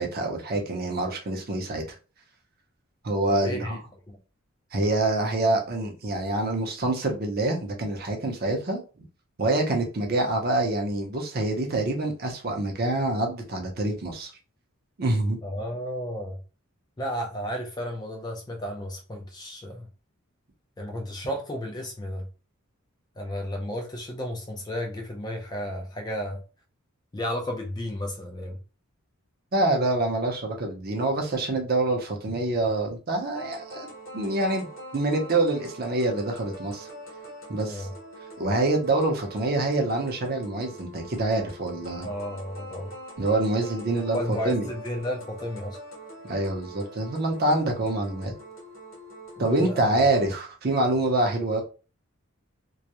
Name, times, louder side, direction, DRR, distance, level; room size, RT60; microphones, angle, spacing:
voice 1, 0.0-1.8 3.0-3.8 4.7-8.8 9.4-14.3 15.0-15.4 29.5-33.9 34.1-34.7 34.9-36.9 37.5-37.9 38.4-42.1 43.2-44.7 46.3-48.3 49.4-51.6, right 2 dB, 45° right, 0.5 m, -26 dB
voice 2, 3.3-3.8 4.1-4.2 15.4-16.4 17.0-19.9 20.8-22.3 23.2-26.4 27.1-28.6 37.6-37.9 42.0-42.9 44.1-45.8 49.4-49.9, equal, 20° left, 0.3 m, -33 dB
sound 1, 33.3-50.3, right 1 dB, 40° left, 0.9 m, -43 dB
2.3 x 2.0 x 2.8 m
head